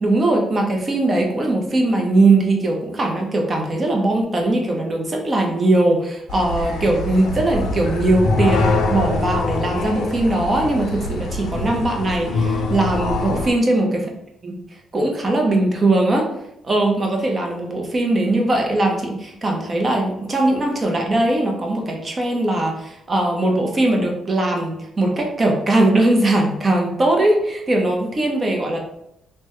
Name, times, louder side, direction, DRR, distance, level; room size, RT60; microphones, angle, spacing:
voice 1, 0.0-13.9 14.4-14.5 14.9-16.3 16.6-28.8, right 2 dB, 35° right, 1 dB, 0.7 m, -20 dB
sound 1, 6.3-13.5, left 3 dB, 80° left, 0.5 m, -24 dB
3.3 x 2.1 x 3.0 m, 0.80 s
cardioid pair, 90°, 0 cm